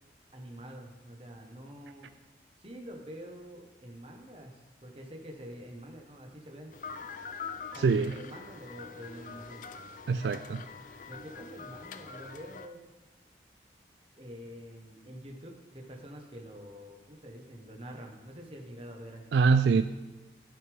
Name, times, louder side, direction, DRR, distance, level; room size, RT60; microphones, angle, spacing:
voice 1, 0.3-2.1 2.6-6.8 7.7-9.7 11.1-12.8 14.2-19.4, equal, 30° right, 2 dB, 1.2 m, -46 dB
sound 1, 6.7-12.7, left 5 dB, 45° left, 0.4 m, -44 dB
voice 2, 7.8-8.1 10.1-10.6 19.3-19.8, right 5 dB, 80° right, 11 dB, 0.3 m, -24 dB
12.0 x 6.7 x 3.5 m, 1.1 s
head